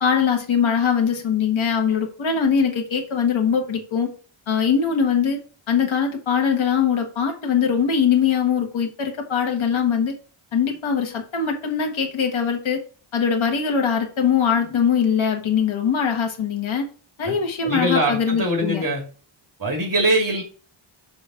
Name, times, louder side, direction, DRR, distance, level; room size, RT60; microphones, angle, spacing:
voice 1, 0.0-4.1 4.5-5.4 5.7-10.2 10.5-12.8 13.1-16.8 17.2-18.8, left 7 dB, 65° left, 3 dB, 1.6 m, -21 dB
voice 2, 17.6-19.0 19.6-20.4, right 1 dB, 40° right, 1 dB, 2.6 m, -22 dB
6.2 x 3.7 x 6.2 m, 0.37 s
wide cardioid pair, 110°, 50 cm